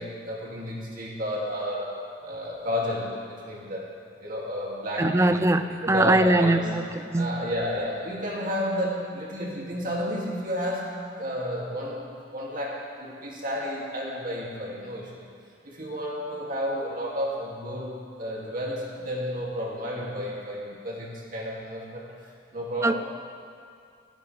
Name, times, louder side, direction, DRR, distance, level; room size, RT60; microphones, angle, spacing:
voice 1, 0.0-3.9 4.2-5.4 5.8-6.6 7.2-12.0 12.3-15.3 15.6-22.1 22.5-23.0, equal, 45° right, -4 dB, 2.5 m, -31 dB
voice 2, 5.0-7.4 22.8-23.0, right 2 dB, 15° right, 10 dB, 0.4 m, -22 dB
26.0 x 9.3 x 3.4 m, 2.3 s
head